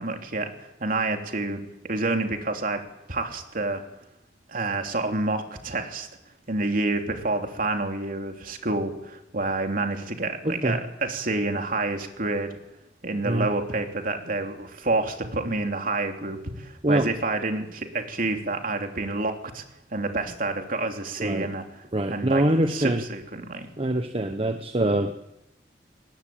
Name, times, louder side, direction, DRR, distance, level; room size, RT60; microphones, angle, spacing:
voice 1, 0.0-2.8 3.1-3.8 4.5-6.1 6.5-12.5 13.0-19.6 19.9-23.7, right 2 dB, 50° right, 4 dB, 3.2 m, -28 dB
voice 2, 10.4-10.8 13.2-13.5 16.8-17.1 21.2-21.5 21.9-23.0 23.8-25.1, right 1 dB, 35° right, 6 dB, 1.2 m, -24 dB
22.5 x 20.0 x 8.7 m, 0.87 s
head